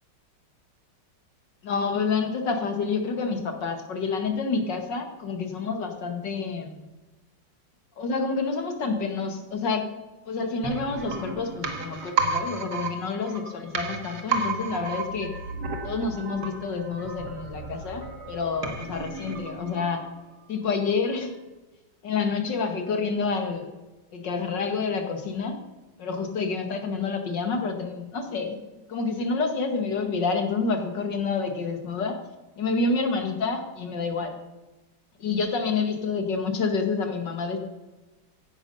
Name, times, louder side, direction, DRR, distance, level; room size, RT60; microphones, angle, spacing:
voice 1, 1.6-6.7 8.0-9.9 10.3-15.3 15.8-20.0 20.5-21.3 22.0-23.7 24.1-25.6 26.0-28.6 28.9-32.2 32.6-34.4 35.2-37.6, left 4 dB, 75° left, 6 dB, 2.5 m, -28 dB
sound 1, 10.6-20.3 20.6-20.7, right 4 dB, 65° right, 2.2 m, -33 dB
16.0 x 11.0 x 5.5 m, 1.1 s
omnidirectional pair, 1.9 m